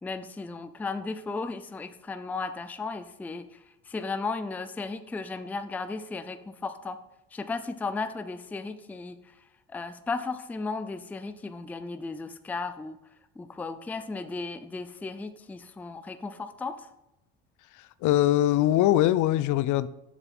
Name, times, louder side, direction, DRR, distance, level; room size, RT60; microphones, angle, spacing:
voice 1, 0.0-3.5 3.9-7.0 7.3-9.2 9.7-13.0 13.4-16.9, left 3 dB, 5° left, 11 dB, 0.3 m, -35 dB
voice 2, 17.7-19.9, left 13 dB, 65° left, 17 dB, 0.5 m, -22 dB
7.4 x 6.9 x 3.5 m, 0.91 s
cardioid pair, 105°, 33 cm